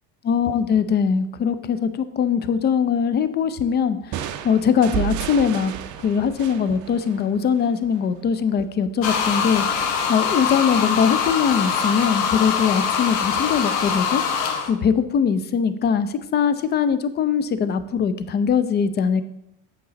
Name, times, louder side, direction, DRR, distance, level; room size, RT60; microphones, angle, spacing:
voice 1, 0.2-5.7 6.0-14.2 14.7-19.2, left 7 dB, 20° left, 12 dB, 0.4 m, -21 dB
sound 1, 4.1-7.8, right 12 dB, 40° right, 0.6 m, -31 dB
sound 2, 9.0-14.7, left 6 dB, 60° left, 1.2 m, -23 dB
7.6 x 5.3 x 4.0 m, 0.82 s
hypercardioid pair, 95°, 50 cm